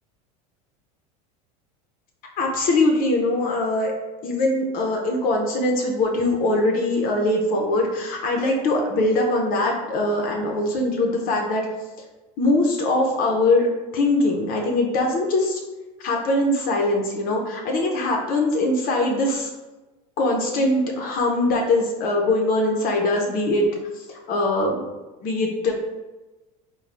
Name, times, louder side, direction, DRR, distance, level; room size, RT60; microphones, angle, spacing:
voice 1, 2.4-3.9 4.2-11.7 12.4-13.7 13.9-15.6 16.0-19.5 20.2-23.6 24.1-24.8 25.2-25.7, left 2 dB, 50° left, 1 dB, 0.7 m, -22 dB
3.7 x 2.3 x 3.3 m, 1.1 s
supercardioid pair, 110°, 19 cm